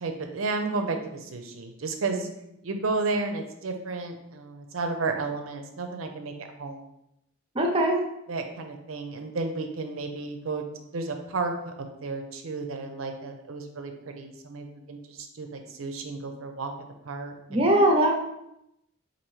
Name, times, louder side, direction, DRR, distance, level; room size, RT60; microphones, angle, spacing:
voice 1, 0.0-2.3 2.6-6.8 8.3-10.6 10.9-16.7 17.1-17.7, right 3 dB, 85° right, 5 dB, 0.6 m, -32 dB
voice 2, 7.5-8.0 17.5-18.1, right 1 dB, 30° right, 2 dB, 0.6 m, -21 dB
5.3 x 2.6 x 3.1 m, 0.83 s
head